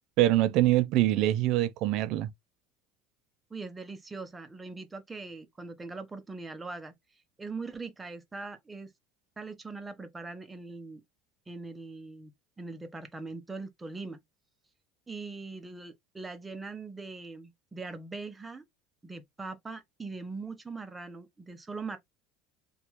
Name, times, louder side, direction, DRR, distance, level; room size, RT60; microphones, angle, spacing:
voice 1, 0.2-2.3, right 15 dB, 60° right, 0.4 m, -24 dB
voice 2, 3.5-6.9 7.4-8.9 9.4-11.0 11.5-12.3 12.6-14.2 15.1-18.6 19.0-22.0, right 3 dB, 15° right, 0.7 m, -41 dB
2.9 x 2.3 x 2.9 m
supercardioid pair, 130°, 0 cm